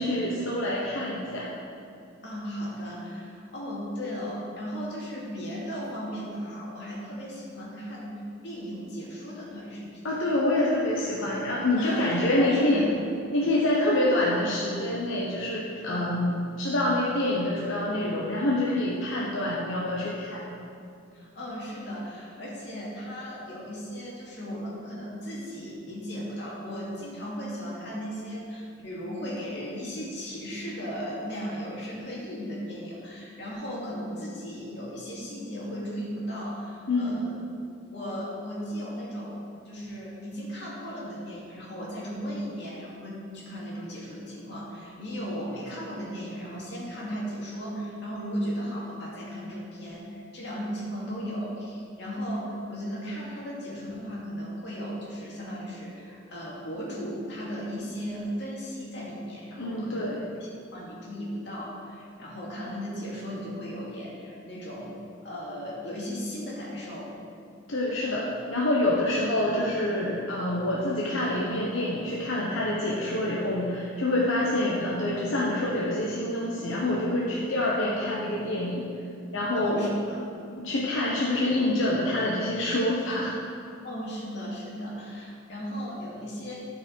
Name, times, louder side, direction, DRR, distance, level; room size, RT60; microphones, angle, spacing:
voice 1, 0.0-1.5 10.0-12.8 13.3-20.5 36.9-37.2 59.6-60.2 67.7-78.9 79.3-79.9 80.6-83.3, left 1 dB, 85° left, -5 dB, 1.1 m, -26 dB
voice 2, 2.2-10.2 11.8-12.9 15.8-16.2 21.1-37.4 37.9-64.9 65.2-67.1 79.5-80.2 83.8-86.5, equal, 60° left, -5 dB, 2.3 m, -36 dB
12.5 x 5.4 x 4.6 m, 2.5 s
head